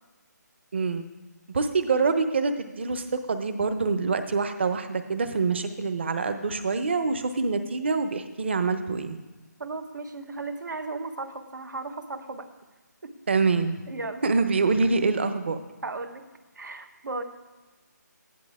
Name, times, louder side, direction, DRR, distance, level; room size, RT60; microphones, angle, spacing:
voice 1, 0.7-1.1 1.5-9.2 13.3-13.8 14.2-15.6, right 4 dB, 40° right, 9 dB, 0.9 m, -25 dB
voice 2, 9.6-12.5 13.0-13.1 13.9-14.2 15.8-16.2 16.5-17.2, right 3 dB, 80° right, 7 dB, 1.6 m, -35 dB
15.5 x 10.5 x 3.6 m, 1.2 s
hypercardioid pair, 175°, 10 cm